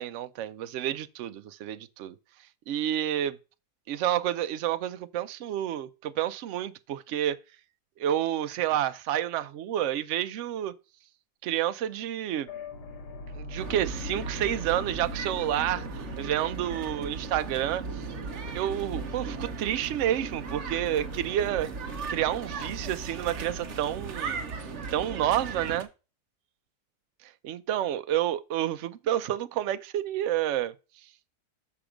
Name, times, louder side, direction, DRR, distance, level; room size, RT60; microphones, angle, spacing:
voice 1, 0.0-2.1 2.7-3.4 3.9-7.4 8.0-10.7 11.4-12.5 13.3-15.9 16.2-17.8 18.5-21.7 22.1-24.4 24.9-25.9 27.4-30.7, right 11 dB, 70° right, 0.7 m, -29 dB
sound 1, 12.5-24.4, left 2 dB, 75° left, 1.6 m, -45 dB
sound 2, 13.6-25.8, right 4 dB, 50° right, 1.2 m, -37 dB
7.1 x 5.8 x 5.0 m
omnidirectional pair, 1.8 m